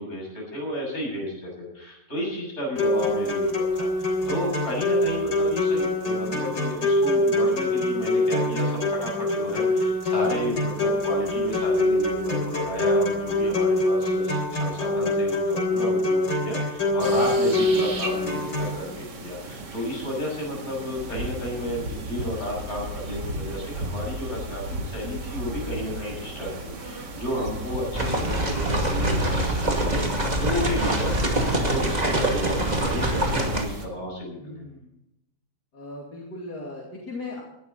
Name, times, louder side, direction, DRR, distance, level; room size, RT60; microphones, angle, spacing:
voice 1, 0.0-34.7, left 1 dB, 40° left, -2 dB, 7.6 m, -32 dB
sound 1, 2.8-18.8, left 1 dB, 90° left, 4.1 m, -24 dB
sound 2, 17.0-33.9, right 1 dB, 90° right, 2.7 m, -35 dB
sound 3, 27.9-33.6, right 1 dB, 25° right, 2.4 m, -25 dB
voice 2, 34.4-34.9 35.7-37.4, left 2 dB, 75° left, -3 dB, 3.2 m, -38 dB
18.5 x 12.5 x 4.1 m, 0.83 s
omnidirectional pair, 1.8 m